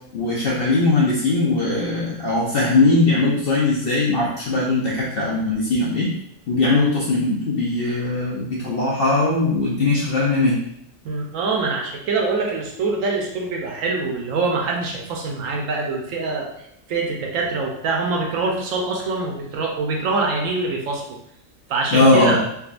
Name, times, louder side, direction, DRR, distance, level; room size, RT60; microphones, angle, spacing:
voice 1, 0.1-6.1 6.5-10.6 21.9-22.4, left 2 dB, 65° left, -5 dB, 0.6 m, -20 dB
voice 2, 11.0-16.5 16.9-21.2 21.7-22.4, right 3 dB, 70° right, 0 dB, 0.9 m, -24 dB
3.5 x 2.3 x 2.4 m, 0.75 s
omnidirectional pair, 1.5 m